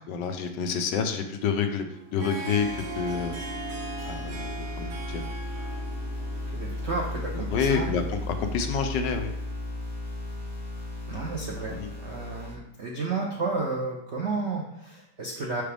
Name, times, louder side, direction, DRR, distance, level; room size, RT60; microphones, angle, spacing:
voice 1, 0.1-1.8 2.1-3.3 4.0-5.2 7.3-9.3 11.8-11.9, left 6 dB, 70° left, 6 dB, 1.2 m, -28 dB
Harp, 1.9-9.7, right 3 dB, 90° right, 1.7 m, -40 dB
sound 1, 2.6-12.6, left 1 dB, 50° left, 1.9 m, -35 dB
voice 2, 6.5-7.9 11.1-15.6, right 3 dB, 65° right, -2 dB, 0.6 m, -32 dB
5.8 x 5.1 x 3.3 m, 0.80 s
omnidirectional pair, 2.1 m